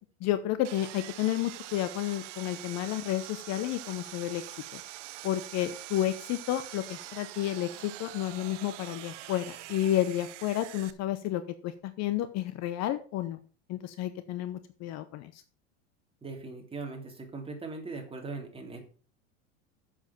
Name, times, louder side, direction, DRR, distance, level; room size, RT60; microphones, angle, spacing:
voice 1, 0.2-4.4 4.7-4.8 5.2-13.4 13.7-15.4, left 13 dB, 45° left, 12 dB, 0.9 m, -31 dB
Sawing, 0.6-10.9, right 15 dB, 75° right, 0.8 m, -44 dB
voice 2, 16.2-18.8, right 3 dB, 15° right, 2 dB, 3.1 m, -40 dB
7.3 x 7.2 x 5.9 m, 0.39 s
hypercardioid pair, 105°, 37 cm